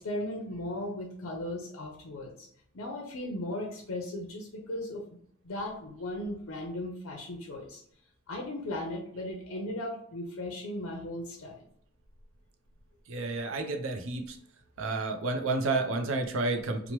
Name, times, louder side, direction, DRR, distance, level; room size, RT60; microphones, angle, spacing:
voice 1, 0.0-2.5 2.7-5.2 5.4-7.8 8.3-11.6, left 1 dB, 65° left, 0 dB, 0.5 m, -37 dB
voice 2, 13.1-14.4 14.8-16.9, right 3 dB, 65° right, 5 dB, 0.4 m, -30 dB
2.9 x 2.0 x 3.0 m, 0.63 s
head